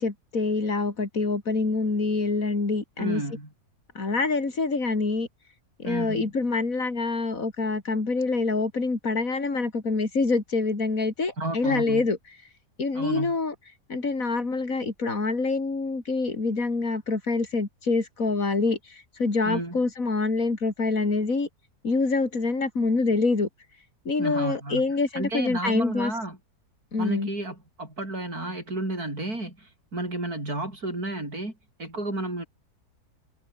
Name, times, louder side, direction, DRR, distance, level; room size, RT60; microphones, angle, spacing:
voice 1, 0.0-3.2 4.0-5.3 5.8-12.2 12.8-13.5 13.9-18.8 19.2-21.5 21.8-23.5 24.1-26.1 26.9-27.3, left 3 dB, 60° left, 4.1 m, -26 dB
voice 2, 3.0-3.5 5.8-6.3 11.4-12.1 12.9-13.4 19.4-19.8 24.2-24.8 25.1-26.4 27.0-31.5 31.8-32.5, right 2 dB, 70° right, 8.3 m, -32 dB
omnidirectional pair, 1.7 m